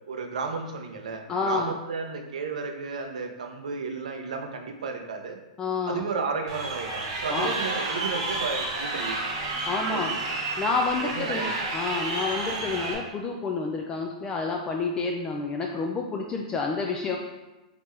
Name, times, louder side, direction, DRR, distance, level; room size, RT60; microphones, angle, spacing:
voice 1, 0.0-5.4 5.9-9.3 9.9-10.2 11.0-11.5, right 4 dB, 80° right, 4 dB, 0.6 m, -33 dB
voice 2, 1.3-1.7 5.6-6.0 7.3-7.5 9.7-10.1 10.6-17.2, left 4 dB, 20° left, 1 dB, 0.3 m, -29 dB
Crowd, 6.5-12.9, right 2 dB, 50° right, 1.0 m, -30 dB
3.6 x 3.0 x 3.2 m, 1.1 s
hypercardioid pair, 125°, 4 cm